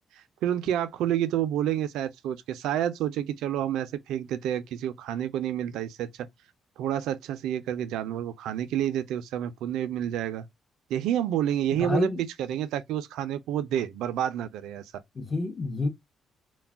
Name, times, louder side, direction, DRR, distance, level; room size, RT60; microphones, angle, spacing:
voice 1, 0.1-6.3 6.8-10.5 10.9-12.1 12.5-14.9, right 11 dB, 90° right, 0.3 m, -29 dB
voice 2, 11.7-12.2 15.1-15.9, left 2 dB, 30° left, 0.7 m, -28 dB
2.3 x 2.1 x 3.4 m
cardioid pair, 90°, 0 cm